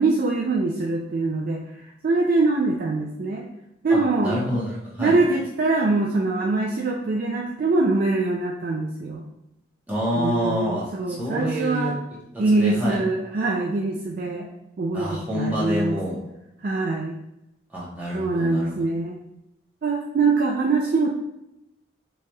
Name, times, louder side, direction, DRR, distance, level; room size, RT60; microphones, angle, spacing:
voice 1, 0.0-1.6 2.0-3.4 3.8-4.4 5.0-9.2 10.2-11.9 12.4-14.5 14.8-16.0 16.6-17.2 18.1-19.2 19.8-21.1, right 3 dB, 45° right, -1 dB, 0.3 m, -23 dB
voice 2, 3.9-5.2 9.9-11.9 12.3-13.0 14.9-16.2 17.7-18.7, equal, 10° right, -8 dB, 1.1 m, -27 dB
4.6 x 3.0 x 2.3 m, 0.89 s
head